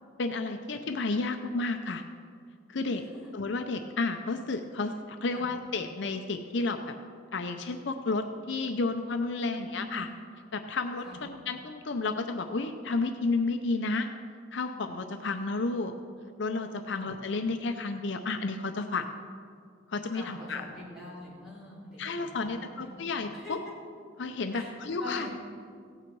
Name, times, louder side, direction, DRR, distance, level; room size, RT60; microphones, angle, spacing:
voice 1, 0.2-2.0 2.7-3.0 3.3-6.9 7.3-10.1 10.5-14.1 14.5-15.9 16.4-19.1 19.9-20.7 22.0-23.6 24.2-25.3, left 3 dB, 60° left, 6 dB, 0.6 m, -31 dB
voice 2, 2.9-3.3 5.3-5.4 9.4-10.1 11.0-11.2 16.9-17.1 20.1-23.0 23.4-23.6 24.5-24.7 25.0-25.3, left 1 dB, ahead, -8 dB, 3.6 m, -44 dB
16.0 x 8.9 x 4.6 m, 2.2 s
head